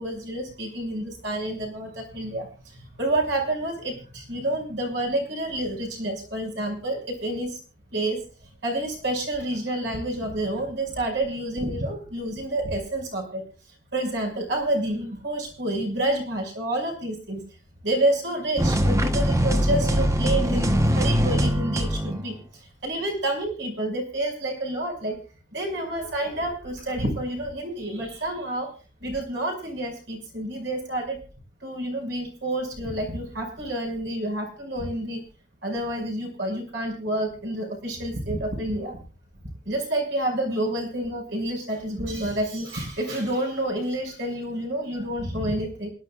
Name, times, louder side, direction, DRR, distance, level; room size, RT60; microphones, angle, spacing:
voice 1, 0.0-2.5 3.0-7.5 7.9-8.2 8.6-13.4 13.9-17.4 17.8-22.4 22.8-25.1 25.5-28.7 29.0-31.2 31.6-35.2 35.6-39.0 39.7-45.9, right 1 dB, 65° right, 1 dB, 5.7 m, -28 dB
sound 1, 18.6-22.3, equal, 15° right, 1.0 m, -22 dB
27.0 x 11.5 x 2.4 m, 0.35 s
head